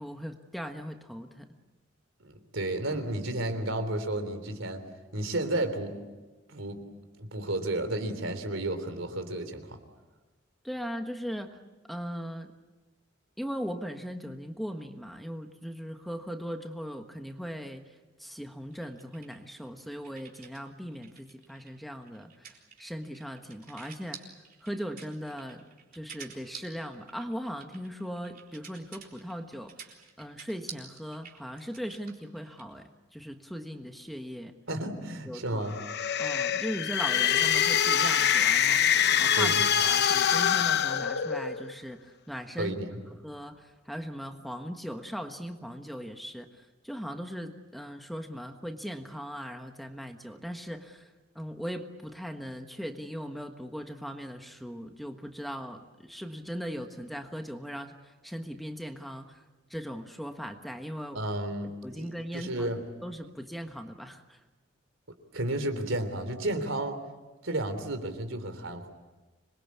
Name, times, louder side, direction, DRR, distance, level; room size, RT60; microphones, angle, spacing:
voice 1, 0.0-1.5 10.6-11.6 11.9-12.5 13.4-17.9 18.2-24.3 24.6-25.6 25.9-34.5 35.2-35.6 36.2-42.8 43.2-59.4 59.7-61.2 61.8-62.7 63.0-64.4, equal, ahead, 5 dB, 1.4 m, -39 dB
voice 2, 2.2-4.8 5.1-5.9 6.5-6.8 7.2-9.8 34.7-35.7 39.3-39.6 42.6-43.0 61.1-62.8 65.3-67.0 67.4-68.9, right 1 dB, 75° right, 9 dB, 3.4 m, -32 dB
sound 1, 18.7-20.6 20.9-32.7, right 7 dB, 45° right, 3.9 m, -49 dB
sound 2, 35.7-41.7, left 8 dB, 60° left, 0.9 m, -25 dB
26.5 x 22.0 x 8.5 m, 1.2 s
head